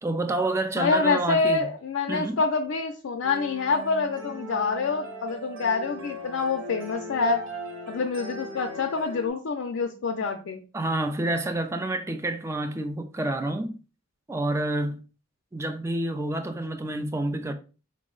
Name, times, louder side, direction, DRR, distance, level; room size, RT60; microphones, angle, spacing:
voice 1, 0.0-1.7 2.1-2.4 10.7-13.8 14.3-15.0 15.5-17.5, right 2 dB, 15° right, 0.3 m, -28 dB
voice 2, 0.8-7.5 7.9-10.6, left 4 dB, 80° left, 0.4 m, -26 dB
sound 1, 3.2-9.3, right 1 dB, 90° right, 0.8 m, -39 dB
4.0 x 2.0 x 3.7 m
head